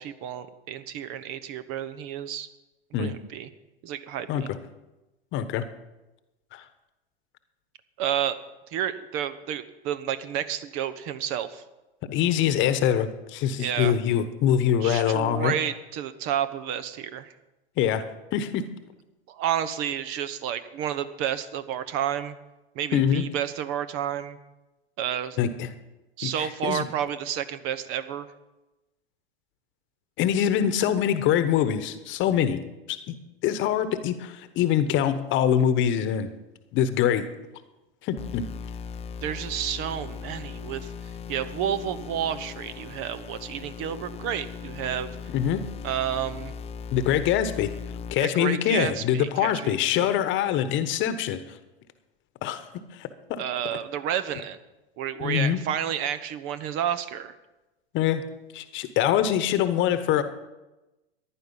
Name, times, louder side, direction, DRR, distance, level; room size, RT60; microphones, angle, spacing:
voice 1, 0.0-2.5 3.0-3.5 3.8-4.5 8.0-8.4 8.7-11.6 13.6-14.0 14.8-17.3 19.3-22.4 22.7-24.4 25.0-25.4 26.2-28.3 39.2-40.9 41.3-45.2 45.8-46.5 48.2-50.2 53.4-54.6 55.0-57.3, right 9 dB, 45° right, 12 dB, 1.0 m, -30 dB
voice 2, 5.3-5.6 6.5-6.6 12.1-15.5 17.8-18.0 18.3-18.7 22.9-23.2 25.4-25.7 26.2-26.8 30.2-32.6 32.9-33.1 33.4-36.3 36.7-37.3 38.0-38.5 45.3-45.6 46.9-47.7 48.1-51.4 52.4-52.7 52.9-53.4 55.2-55.6 57.9-58.2 58.5-60.2, left 9 dB, 40° left, 11 dB, 1.2 m, -24 dB
sound 1, 38.2-48.1, left 6 dB, 20° left, 0.7 m, -38 dB
14.5 x 10.5 x 5.6 m, 1.0 s
hypercardioid pair, 95°, 31 cm